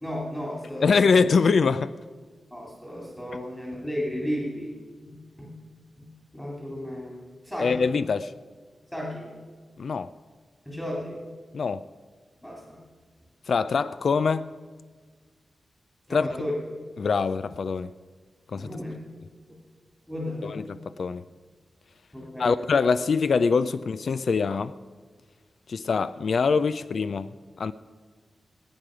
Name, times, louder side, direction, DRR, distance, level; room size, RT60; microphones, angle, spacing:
voice 1, 0.0-1.1 2.5-4.7 5.0-5.6 6.0-7.9 8.9-9.3 10.7-11.2 12.4-12.8 16.1-16.5 18.5-19.0 20.1-20.6 22.1-22.5, left 1 dB, 10° left, 2.4 m, -34 dB
voice 2, 0.8-1.9 7.6-8.3 9.8-10.1 11.5-11.9 13.5-14.5 16.1-16.3 17.0-17.9 18.5-18.7 20.4-21.2 22.4-24.7 25.7-27.7, left 5 dB, 55° left, 0.3 m, -24 dB
19.5 x 9.1 x 4.9 m
wide cardioid pair, 175°, 0 cm